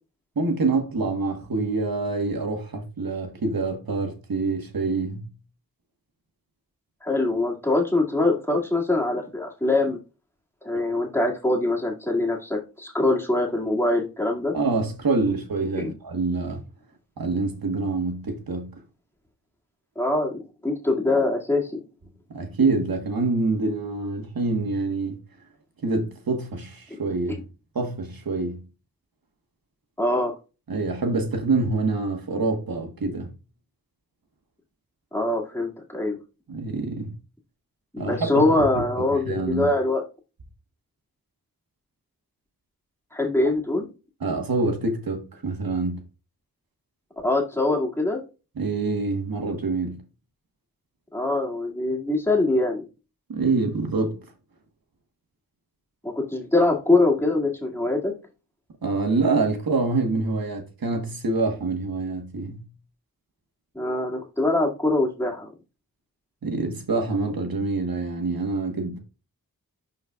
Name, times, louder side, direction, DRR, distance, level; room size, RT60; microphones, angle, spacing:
voice 1, 0.3-5.3 14.5-16.6 17.2-18.8 22.3-25.2 25.8-27.4 27.7-28.6 30.7-33.3 36.5-37.1 38.0-38.8 39.2-39.7 44.2-46.0 48.6-50.0 53.3-54.2 58.8-62.6 66.4-69.0, right 3 dB, 75° right, 1.3 m, -26 dB
voice 2, 7.0-10.0 10.6-14.5 15.8-15.9 20.0-21.8 26.9-27.0 30.0-30.4 35.1-36.2 37.9-40.0 43.1-43.9 47.2-48.2 51.1-52.8 56.0-58.1 63.7-65.5, left 2 dB, 5° left, 2.1 m, -23 dB
11.0 x 4.0 x 2.3 m
wide cardioid pair, 70°, 36 cm